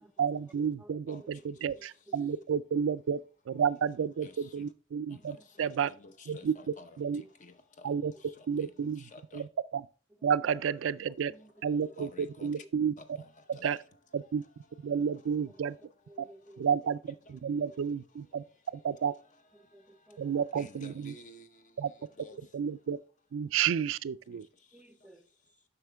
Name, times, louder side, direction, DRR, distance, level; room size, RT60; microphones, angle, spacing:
voice 1, 0.2-3.2 3.5-5.9 6.3-6.5 7.0-7.2 7.8-8.1 8.5-9.1 9.3-9.5 9.7-9.8 10.2-11.3 11.6-12.9 13.5-13.8 14.1-14.4 14.8-15.8 16.2-16.3 16.6-18.4 18.8-19.1 20.2-21.1 21.8-21.9 22.5-23.0 23.3-24.5, right 7 dB, 90° right, 0.4 m, -31 dB
voice 2, 0.8-1.3 1.7-2.3 5.1-5.5 7.1-7.3 10.2-10.4 11.3-11.9 14.9-15.2 16.1-16.8 17.5-17.8 18.3-18.4 19.5-20.4 22.4-22.5 24.7-25.3, right 1 dB, 5° right, 0.5 m, -56 dB
voice 3, 4.2-4.6 5.1-5.2 5.6-7.0 7.4-7.9 8.6-8.7 9.1-9.4 12.0-12.5 13.2-13.3 13.5-13.7 20.6-21.5 22.2-22.4, left 3 dB, 40° left, 0.7 m, -51 dB
7.8 x 5.7 x 3.4 m
head